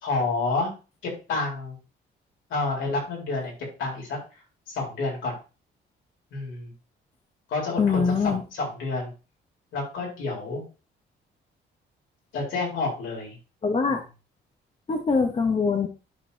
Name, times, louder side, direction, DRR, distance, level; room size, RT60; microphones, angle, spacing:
voice 1, 0.0-0.7 1.0-1.8 2.5-3.5 3.8-4.2 4.7-5.3 6.3-6.7 7.5-9.1 9.7-10.6 12.3-13.4, left 3 dB, 80° left, -2 dB, 4.2 m, -29 dB
voice 2, 7.8-8.4 13.6-14.0 14.9-15.9, left 5 dB, 30° left, 5 dB, 1.0 m, -23 dB
11.5 x 5.3 x 2.8 m, 0.32 s
cardioid pair, 90°, 20 cm